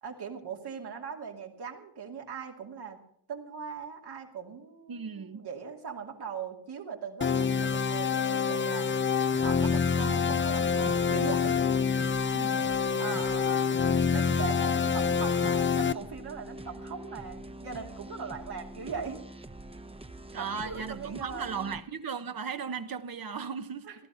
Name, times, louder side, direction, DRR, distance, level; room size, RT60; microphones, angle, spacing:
voice 1, 0.0-3.0 3.3-8.9 9.4-11.6 13.0-13.7 14.1-19.2 20.4-21.5 23.9-24.0, right 6 dB, 85° right, 2.6 m, -40 dB
voice 2, 4.9-5.5 12.3-12.8 20.3-23.9, right 6 dB, 65° right, 1.0 m, -37 dB
sound 1, 7.2-15.9, left 6 dB, 30° left, 0.5 m, -26 dB
sound 2, 9.3-21.8, right 1 dB, 15° right, 0.8 m, -45 dB
16.5 x 13.0 x 5.6 m
wide cardioid pair, 90°, 38 cm